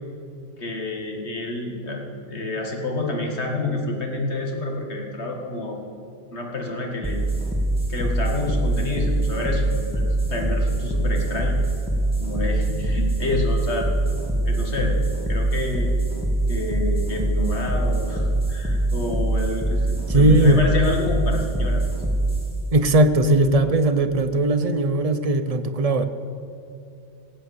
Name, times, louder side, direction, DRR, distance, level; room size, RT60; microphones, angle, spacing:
voice 1, 0.6-5.8 6.3-7.2 7.9-11.5 12.2-13.9 14.4-15.0 15.3-15.9 16.5-21.8, left 2 dB, 70° left, 1 dB, 2.2 m, -28 dB
sound 1, 7.0-24.1, right 1 dB, 5° right, 1.9 m, -24 dB
voice 2, 20.1-20.6 22.7-26.1, right 1 dB, 40° right, 9 dB, 0.7 m, -18 dB
17.0 x 7.7 x 7.9 m, 2.5 s
omnidirectional pair, 1.2 m